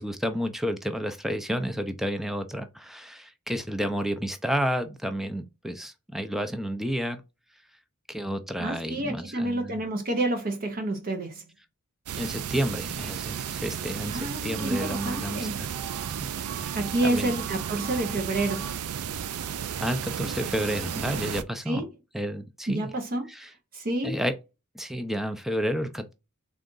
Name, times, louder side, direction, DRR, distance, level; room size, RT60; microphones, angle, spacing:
voice 1, 0.0-7.2 8.1-9.8 12.2-15.7 17.0-17.3 19.8-21.8 22.1-22.9 23.3-23.5 24.0-24.3 24.7-26.1, equal, ahead, 0.4 m, -31 dB
voice 2, 8.6-11.5 14.1-15.6 16.5-18.8 21.7-21.9 22.7-24.2, right 1 dB, 40° right, 0.7 m, -29 dB
sound 1, 12.1-21.4, right 8 dB, 85° right, 0.4 m, -33 dB
3.7 x 2.4 x 3.7 m
head